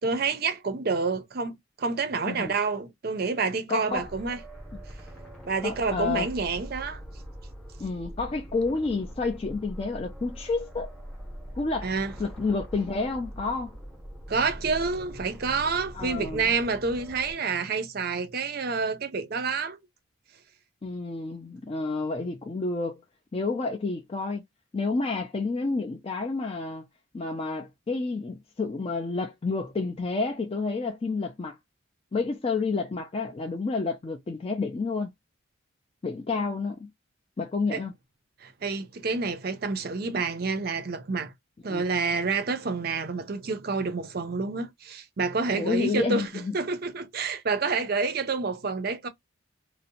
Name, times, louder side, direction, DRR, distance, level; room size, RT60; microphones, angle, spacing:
voice 1, 0.0-4.4 5.5-7.0 11.8-12.1 14.3-19.8 37.7-37.8 38.4-41.3 41.6-49.1, right 4 dB, 45° right, 0.5 m, -28 dB
voice 2, 3.7-4.1 5.6-6.3 7.8-10.9 11.6-11.9 12.2-13.8 15.9-16.5 20.8-23.0 23.3-24.4 24.7-26.9 27.1-31.6 32.1-35.1 36.0-36.9 37.4-37.9 41.7-41.8 45.5-46.6, left 3 dB, 30° left, 0.3 m, -30 dB
sound 1, 3.9-17.3, equal, 5° left, 0.7 m, -43 dB
2.6 x 2.0 x 2.7 m
head